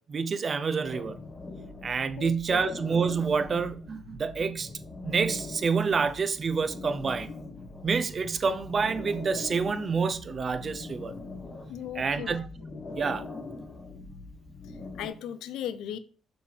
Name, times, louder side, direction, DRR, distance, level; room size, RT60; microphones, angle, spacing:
voice 1, 0.1-1.2 1.8-4.7 5.0-7.3 7.8-11.1 11.9-12.4 12.9-13.2, right 5 dB, 40° right, 0.6 m, -28 dB
sound 1, 0.8-15.1, left 3 dB, 30° left, 1.2 m, -42 dB
voice 2, 2.2-2.8 11.7-12.4 15.0-16.0, left 10 dB, 85° left, 0.4 m, -37 dB
6.0 x 3.4 x 5.1 m
cardioid pair, 90°, 0 cm